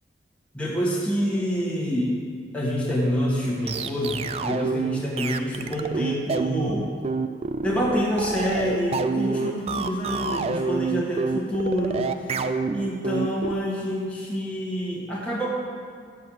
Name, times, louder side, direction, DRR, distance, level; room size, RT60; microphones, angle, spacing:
voice 1, 0.5-2.2 2.5-6.9 7.6-12.0 12.7-15.5, equal, 5° left, -5 dB, 1.4 m, -27 dB
sound 1, 3.2-13.6, right 4 dB, 35° right, 0.3 m, -27 dB
7.6 x 7.3 x 6.3 m, 2.1 s
head